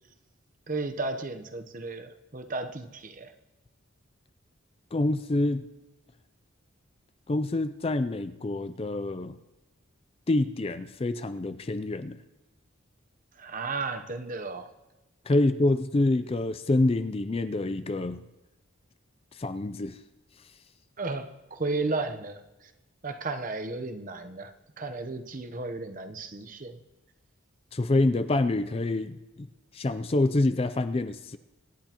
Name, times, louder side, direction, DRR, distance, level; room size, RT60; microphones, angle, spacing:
voice 1, 0.7-3.3 13.4-14.7 21.0-22.7 23.0-26.8, right 3 dB, 40° right, 8 dB, 0.8 m, -34 dB
voice 2, 4.9-5.6 7.3-9.4 10.3-12.2 15.3-18.2 19.3-20.0 27.7-29.5 29.7-31.4, left 2 dB, 25° left, 11 dB, 0.4 m, -26 dB
24.5 x 10.5 x 3.0 m, 1.0 s
head